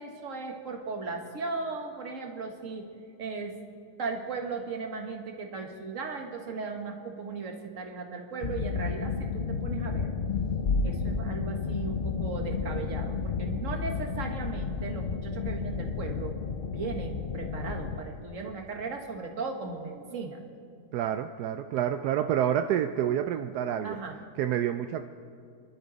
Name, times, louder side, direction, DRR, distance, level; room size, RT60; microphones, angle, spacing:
voice 1, 0.0-2.8 3.2-3.6 4.0-10.1 10.8-16.3 16.7-20.4 23.8-24.2, right 4 dB, 55° right, 3 dB, 1.9 m, -37 dB
sound 1, 8.4-18.0, left 5 dB, 50° left, 0.7 m, -31 dB
voice 2, 20.9-24.0 24.4-25.0, right 10 dB, 85° right, 8 dB, 1.1 m, -28 dB
29.5 x 12.0 x 4.1 m, 2.3 s
omnidirectional pair, 1.7 m